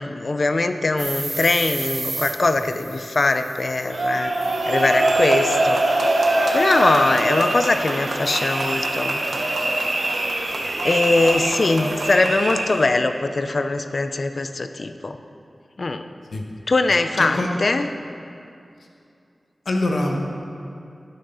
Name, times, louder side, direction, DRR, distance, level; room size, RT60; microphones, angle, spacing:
voice 1, 0.0-4.3 4.7-5.8 6.2-9.2 10.8-15.2 15.8-16.0 16.7-17.9, left 3 dB, 60° left, 8 dB, 0.7 m, -21 dB
sound 1, 1.0-12.2, right 2 dB, 50° right, 1.4 m, -36 dB
sound 2, 3.9-12.9, right 2 dB, 85° right, 1.4 m, -23 dB
voice 2, 17.2-17.5 19.6-20.1, left 2 dB, 85° left, 1 dB, 1.5 m, -23 dB
19.5 x 6.6 x 5.6 m, 2.5 s
wide cardioid pair, 80°, 0 cm